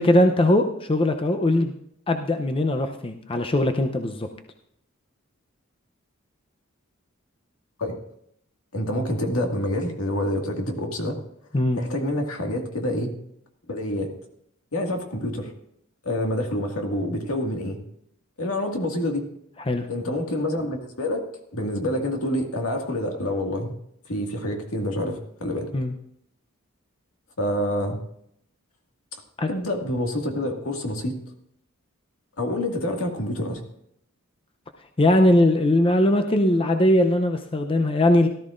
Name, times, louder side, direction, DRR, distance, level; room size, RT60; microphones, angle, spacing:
voice 1, 0.0-1.7 2.1-4.3 11.5-11.8 19.7-19.9 25.7-25.9 29.4-29.5 35.0-38.3, left 1 dB, 25° left, 5 dB, 0.6 m, -20 dB
voice 2, 8.7-11.2 11.8-13.2 13.7-14.1 14.7-15.5 16.0-17.8 18.4-19.2 19.9-21.3 21.5-23.8 24.1-25.7 27.4-28.0 29.5-31.2 32.4-33.6, left 1 dB, 80° left, 2 dB, 2.0 m, -27 dB
17.5 x 13.0 x 2.6 m, 0.73 s
head